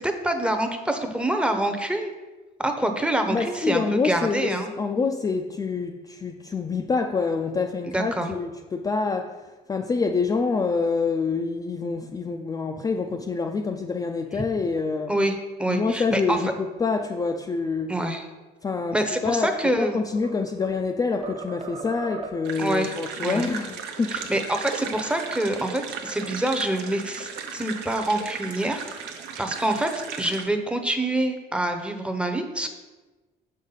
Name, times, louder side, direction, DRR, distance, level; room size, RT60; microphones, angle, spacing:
voice 1, 0.0-2.1 2.6-4.7 7.9-8.3 14.3-14.4 15.1-16.4 17.9-18.2 18.9-20.0 22.6-22.9 23.2-23.5 24.1-29.9 30.2-32.7, right 1 dB, 5° right, 6 dB, 0.7 m, -26 dB
voice 2, 3.3-4.5 4.8-15.1 15.7-18.0 18.6-19.0 19.2-24.2, left 4 dB, 20° left, 3 dB, 0.4 m, -26 dB
sound 1, 19.9-20.9 21.2-22.6, right 4 dB, 40° right, 0.7 m, -39 dB
sound 2, 22.4-30.5, right 7 dB, 85° right, 0.7 m, -36 dB
6.2 x 5.6 x 3.9 m, 1.2 s
cardioid pair, 110°, 17 cm